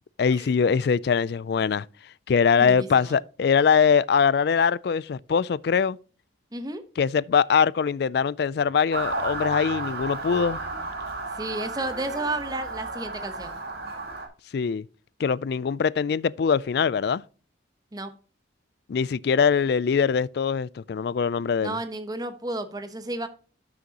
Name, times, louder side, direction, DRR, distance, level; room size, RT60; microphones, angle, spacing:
voice 1, 0.2-1.9 2.3-6.0 7.0-10.6 14.5-14.9 15.2-17.2 18.9-21.8, left 6 dB, 55° left, 0.3 m, -22 dB
voice 2, 2.6-3.2 6.5-6.8 11.4-13.6 17.9-18.1 21.6-23.3, right 2 dB, 20° right, 1.0 m, -32 dB
Motor vehicle (road) / Siren, 8.9-14.3, right 3 dB, 55° right, 2.1 m, -33 dB
12.5 x 6.4 x 2.9 m
head